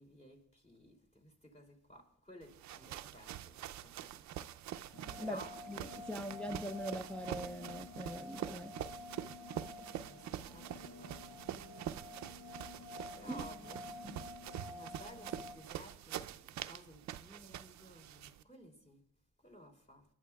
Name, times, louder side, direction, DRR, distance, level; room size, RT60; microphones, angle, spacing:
voice 1, 0.0-3.6 3.8-4.4 5.2-5.6 9.9-11.4 13.1-13.8 14.7-19.0 19.4-20.0, equal, 20° left, 2.9 m, -56 dB
sound 1, 2.4-18.4, right 11 dB, 65° right, 0.6 m, -45 dB
sound 2, 4.9-15.5, left 2 dB, 85° left, 5.9 m, -50 dB
voice 2, 6.1-8.8 13.3-13.4 14.0-14.2, equal, 5° left, 0.5 m, -42 dB
28.5 x 11.0 x 2.4 m
cardioid pair, 90°, 30 cm